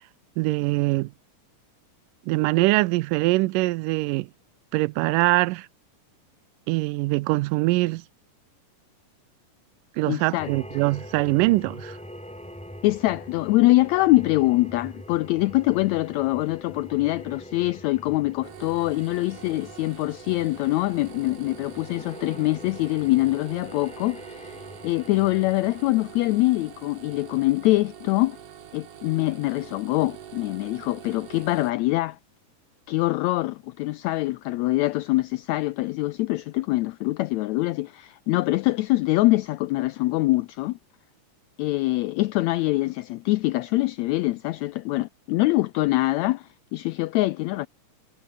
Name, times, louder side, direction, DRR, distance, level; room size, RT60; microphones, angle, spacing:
voice 1, 0.4-1.1 2.3-4.3 4.7-5.7 6.7-8.0 10.0-12.0, right 21 dB, 90° right, 2.2 m, -23 dB
voice 2, 10.1-10.5 12.8-28.4 28.7-32.2 32.9-40.8 41.6-47.7, left 19 dB, 85° left, 1.6 m, -24 dB
sound 1, 10.4-25.9, equal, ahead, 2.1 m, -44 dB
sound 2, 18.4-31.7, right 9 dB, 55° right, 2.3 m, -44 dB
omnidirectional pair, 3.7 m